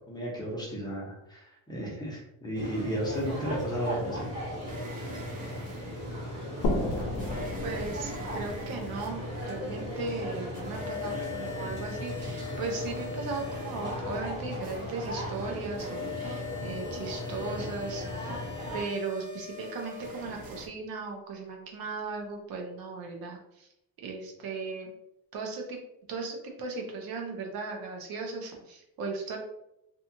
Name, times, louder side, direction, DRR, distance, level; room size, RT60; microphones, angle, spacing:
voice 1, 0.1-4.3, equal, 10° left, -5 dB, 0.7 m, -33 dB
sound 1, 2.5-18.8, equal, 40° right, 1.2 m, -37 dB
sound 2, 3.1-4.0 4.6-10.0 10.3-20.7, left 6 dB, 25° right, 0.4 m, -43 dB
sound 3, 6.6-10.2, left 1 dB, 70° left, 0.6 m, -34 dB
voice 2, 7.6-18.3 18.7-23.7 24.0-24.9 25.3-25.8 26.1-29.4, right 4 dB, 65° right, 2 dB, 0.8 m, -37 dB
2.8 x 2.3 x 2.7 m, 0.82 s
cardioid pair, 150°, 38 cm